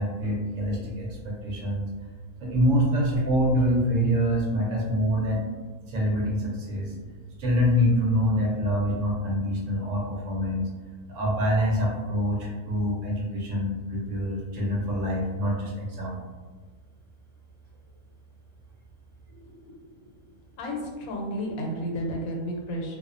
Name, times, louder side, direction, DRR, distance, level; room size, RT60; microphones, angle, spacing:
voice 1, 0.0-1.9 2.4-5.4 5.9-7.0 7.4-10.7 11.1-16.2, equal, 70° right, -2 dB, 1.0 m, -25 dB
voice 2, 20.6-23.0, equal, 90° left, 0 dB, 1.0 m, -32 dB
2.4 x 2.1 x 2.4 m, 1.4 s
omnidirectional pair, 1.4 m